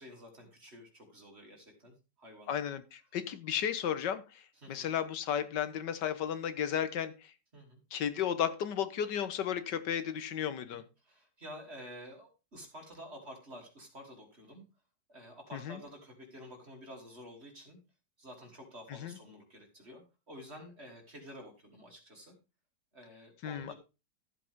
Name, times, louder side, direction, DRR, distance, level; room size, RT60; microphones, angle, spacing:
voice 1, 0.0-2.6 4.6-4.9 7.5-7.8 10.7-14.7 15.1-17.8 18.2-22.4 22.9-23.7, equal, 35° right, 1 dB, 3.3 m, -50 dB
voice 2, 2.5-7.3 7.9-10.8 15.5-15.8 19.0-19.2 23.4-23.7, left 9 dB, 85° left, 12 dB, 1.6 m, -34 dB
14.0 x 7.8 x 3.6 m, 0.29 s
omnidirectional pair, 1.8 m